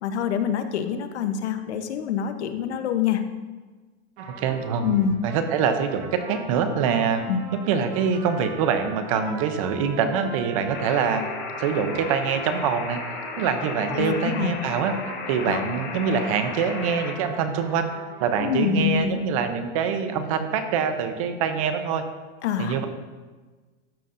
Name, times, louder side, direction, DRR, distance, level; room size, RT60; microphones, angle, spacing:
voice 1, 0.0-3.2 4.8-5.2 7.3-7.4 13.9-14.5 15.4-15.6 18.4-19.2 22.4-22.8, left 7 dB, 90° left, 8 dB, 0.9 m, -25 dB
Trumpet, 4.2-14.4 14.9-18.7, right 4 dB, 85° right, 2.2 m, -41 dB
voice 2, 4.4-5.0 5.2-7.2 7.7-11.2 11.6-13.0 13.3-15.0 15.3-17.9 18.2-22.0 22.6-22.9, right 6 dB, 35° right, 8 dB, 0.5 m, -24 dB
sound 1, 10.7-17.2, left 5 dB, 25° left, 0.5 m, -35 dB
13.0 x 5.5 x 2.5 m, 1.3 s
supercardioid pair, 170°, 33 cm